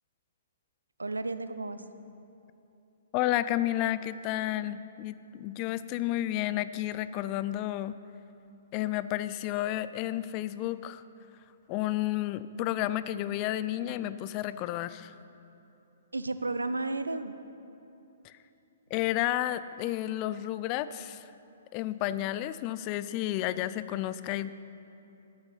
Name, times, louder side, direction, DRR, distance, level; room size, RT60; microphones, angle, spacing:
voice 1, 1.0-1.8 16.1-17.3, right 2 dB, 85° right, 11 dB, 0.6 m, -33 dB
voice 2, 3.1-8.0 8.7-11.0 11.7-15.1 18.2-18.3 18.9-21.2 21.7-24.5, left 14 dB, 35° left, 15 dB, 0.4 m, -31 dB
12.5 x 8.7 x 5.6 m, 3.0 s
figure-of-eight pair, 120°, 0 cm